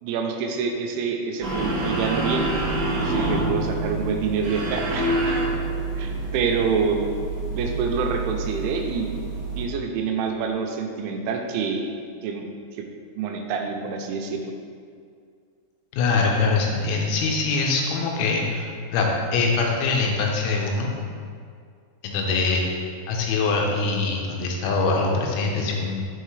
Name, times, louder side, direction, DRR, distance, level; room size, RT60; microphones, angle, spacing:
voice 1, 0.0-2.5 3.0-5.4 6.0-7.0 7.5-9.1 9.6-11.9 12.2-12.5 12.7-12.9 13.2-14.5, right 5 dB, 90° right, 3 dB, 3.0 m, -27 dB
sound 1, 1.4-9.6, right 2 dB, 65° right, 1.6 m, -27 dB
voice 2, 15.9-20.9 22.0-26.0, left 3 dB, 85° left, 0 dB, 3.2 m, -23 dB
6.6 x 5.7 x 3.1 m, 2.2 s
omnidirectional pair, 5.3 m